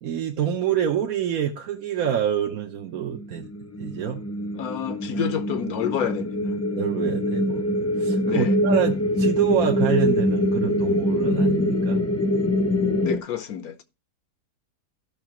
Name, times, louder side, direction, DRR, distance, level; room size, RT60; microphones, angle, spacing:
voice 1, 0.0-3.5 3.8-4.2 6.8-7.7 8.0-12.0, right 9 dB, 65° right, 1.2 m, -26 dB
sound 1, 3.0-13.2, left 1 dB, 15° left, 0.6 m, -24 dB
voice 2, 4.5-6.5 8.2-8.6 13.0-13.8, left 9 dB, 70° left, 1.4 m, -29 dB
14.0 x 6.0 x 3.0 m
omnidirectional pair, 1.7 m